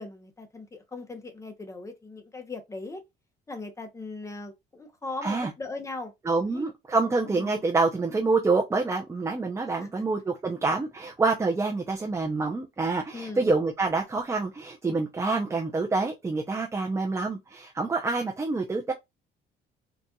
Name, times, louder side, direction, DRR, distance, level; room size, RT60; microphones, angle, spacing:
voice 1, 0.0-3.0 3.5-6.1 6.4-6.7 7.3-7.6 9.8-9.9 13.1-13.5, left 3 dB, 20° left, 0.9 m, -39 dB
voice 2, 6.3-18.9, right 3 dB, 15° right, 0.6 m, -27 dB
4.1 x 2.4 x 2.3 m
cardioid pair, 110°, 17 cm